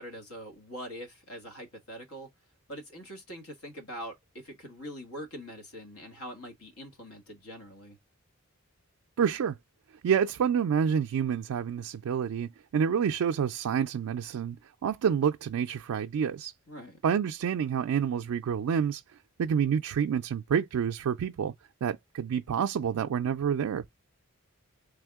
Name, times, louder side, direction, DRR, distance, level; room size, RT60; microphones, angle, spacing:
voice 1, 0.0-2.3 2.7-8.0 16.7-17.0, equal, 85° left, 1.7 m, -43 dB
voice 2, 9.2-9.6 10.0-14.6 14.8-16.5 17.0-19.0 19.4-21.5 21.8-23.9, right 7 dB, 85° right, 0.3 m, -28 dB
3.6 x 3.3 x 3.5 m
head